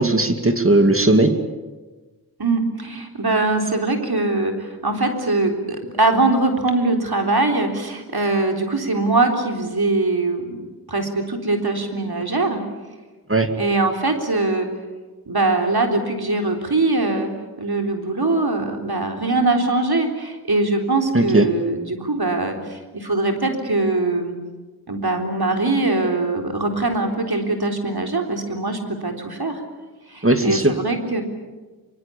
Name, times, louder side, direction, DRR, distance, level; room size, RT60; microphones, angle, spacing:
voice 1, 0.0-1.3 13.3-13.5 21.1-21.5 30.2-30.7, right 2 dB, 35° right, 6 dB, 2.5 m, -17 dB
voice 2, 2.4-10.6 10.9-12.6 13.6-14.7 15.3-17.3 17.6-24.3 24.9-29.6 30.1-31.2, right 2 dB, 75° right, 3 dB, 3.8 m, -22 dB
25.0 x 24.0 x 8.6 m, 1.3 s
wide cardioid pair, 45°, 38 cm